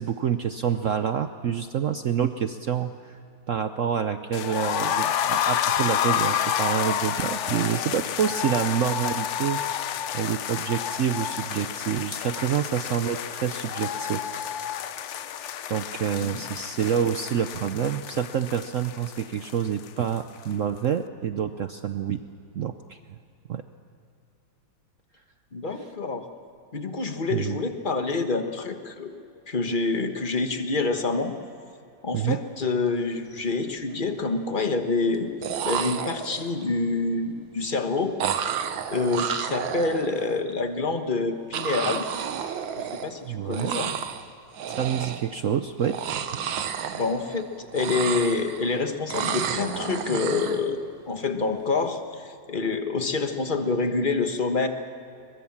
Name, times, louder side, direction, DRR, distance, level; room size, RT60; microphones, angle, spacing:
voice 1, 0.0-3.2 3.5-14.2 15.1-22.2 22.5-23.0 23.5-23.6 27.3-27.6 32.1-32.4 43.3-43.8 44.7-46.0, right 8 dB, 65° right, 9 dB, 0.8 m, -27 dB
sound 1, 4.3-20.2 20.4-20.5 20.8-20.9, left 9 dB, 75° left, 0.6 m, -29 dB
voice 2, 25.5-26.2 26.7-29.1 29.5-31.3 32.0-35.3 35.6-38.1 38.9-42.1 42.8-43.9 46.9-54.7, left 3 dB, 30° left, 7 dB, 1.2 m, -27 dB
sound 2, 33.0-33.2 33.5-34.1 35.1-35.2 35.4-36.6 38.2-40.4 41.5-43.3 43.5-44.3 44.5-45.4 45.8-47.4 47.7-48.7 49.1-50.6, right 8 dB, 90° right, 1.8 m, -31 dB
23.0 x 21.5 x 7.3 m, 2.6 s
omnidirectional pair, 2.0 m